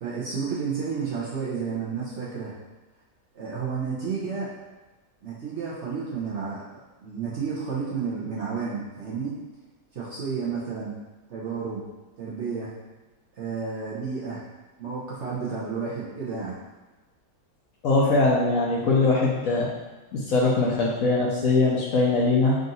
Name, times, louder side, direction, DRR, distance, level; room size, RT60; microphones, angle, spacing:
voice 1, 0.0-2.5 3.3-4.5 5.2-6.6 7.0-9.4 9.9-10.9 11.3-11.8 12.2-12.7 13.4-14.4 14.8-16.5, right 5 dB, 55° right, -7 dB, 0.8 m, -31 dB
voice 2, 17.8-19.7 20.1-22.6, left 3 dB, 65° left, -4 dB, 0.9 m, -21 dB
3.8 x 2.5 x 4.0 m, 1.2 s
omnidirectional pair, 1.7 m